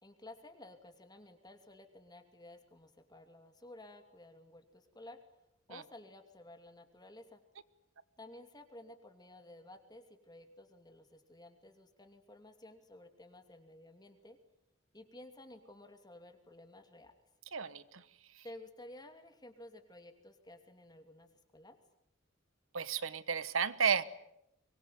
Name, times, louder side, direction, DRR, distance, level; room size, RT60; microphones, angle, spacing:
voice 1, 0.0-5.2 5.7-7.4 8.2-14.4 14.9-17.1 18.4-21.8, left 1 dB, 20° left, 7 dB, 2.7 m, -54 dB
voice 2, 17.5-18.0 22.7-24.0, right 6 dB, 90° right, 16 dB, 1.2 m, -32 dB
24.0 x 22.0 x 9.4 m, 0.81 s
head